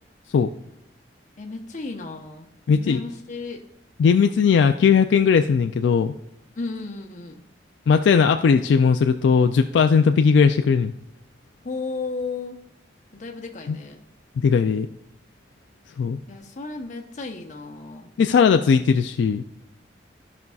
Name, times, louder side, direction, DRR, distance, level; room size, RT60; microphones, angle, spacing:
voice 1, 1.4-2.5 2.8-3.6 6.6-7.4 11.6-12.6 13.1-14.0 16.3-18.1, left 3 dB, 45° left, 2 dB, 0.8 m, -34 dB
voice 2, 2.7-3.0 4.0-6.1 7.9-10.9 13.7-13.8 14.4-14.9 16.0-16.2 18.2-19.4, left 6 dB, 80° left, 7 dB, 0.3 m, -18 dB
14.0 x 5.4 x 2.3 m, 0.78 s
head